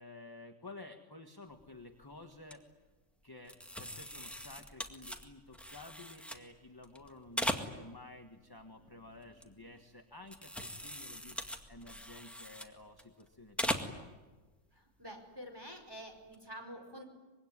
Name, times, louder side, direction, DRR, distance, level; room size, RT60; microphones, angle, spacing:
voice 1, 0.0-2.6 3.2-11.4 11.7-14.1, left 2 dB, 15° left, 4 dB, 1.5 m, -52 dB
sound 1, 1.5-1.8 2.2-2.5 3.5-6.4 6.8-8.1 8.5-9.9 10.2-13.2 13.5-14.1 14.4-14.5 16.1-16.4, equal, ahead, 1.8 m, -40 dB
voice 2, 14.7-17.0, equal, 15° right, 2 dB, 5.1 m, -48 dB
25.0 x 22.0 x 9.7 m, 1.2 s
omnidirectional pair, 1.3 m